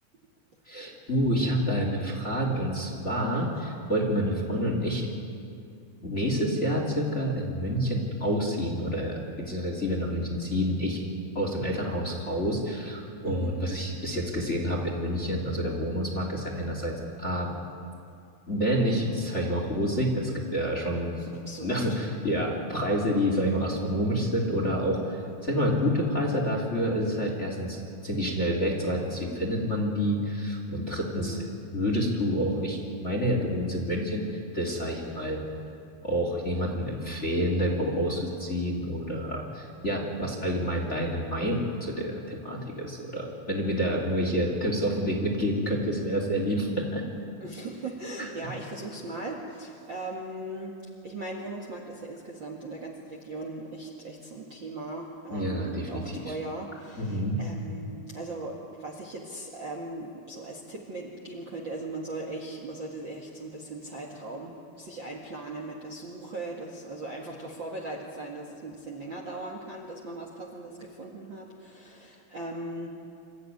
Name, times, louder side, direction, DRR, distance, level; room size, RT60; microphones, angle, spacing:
voice 1, 0.7-5.1 6.0-11.0 11.3-17.5 18.5-21.1 21.6-31.4 31.7-35.4 36.0-47.0 48.2-48.3 55.3-56.3 57.0-57.4, equal, 20° left, 0 dB, 2.5 m, -28 dB
voice 2, 21.1-22.0 22.2-22.5 31.1-31.5 47.4-50.8 51.0-72.9, right 2 dB, 40° right, -1 dB, 1.9 m, -39 dB
27.0 x 14.0 x 9.7 m, 2.4 s
omnidirectional pair, 4.5 m